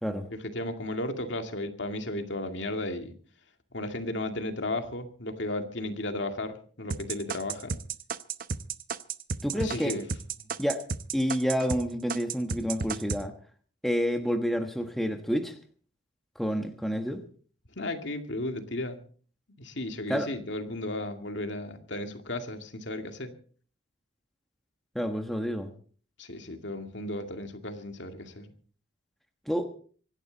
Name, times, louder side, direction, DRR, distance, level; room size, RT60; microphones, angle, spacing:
voice 1, 0.3-3.1 3.7-7.8 9.6-10.0 10.4-10.5 17.8-19.0 19.6-23.3 26.2-28.5, left 1 dB, 65° left, 5 dB, 2.2 m, -34 dB
sound 1, 6.9-11.8 12.1-13.2, right 5 dB, 45° right, 0.7 m, -32 dB
voice 2, 9.4-10.0 10.6-10.8 11.1-13.3 13.8-15.6 16.3-17.2 20.1-20.3 24.9-25.7 29.5-29.7, equal, ahead, 5 dB, 1.3 m, -29 dB
25.5 x 11.5 x 4.0 m, 0.43 s
head